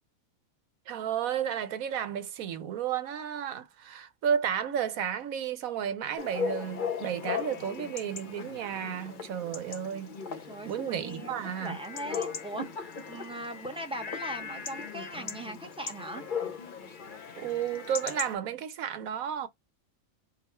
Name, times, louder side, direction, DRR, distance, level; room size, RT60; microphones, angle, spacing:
voice 1, 0.9-10.2 10.7-11.8 17.4-19.5, right 8 dB, 75° right, 1.2 m, -32 dB
Chatter / Bark / Livestock farm animals working animals, 6.2-18.3, left 6 dB, 45° left, 0.8 m, -38 dB
voice 2, 10.5-16.2, right 1 dB, 5° right, 0.7 m, -40 dB
3.8 x 2.4 x 4.3 m
omnidirectional pair, 1.5 m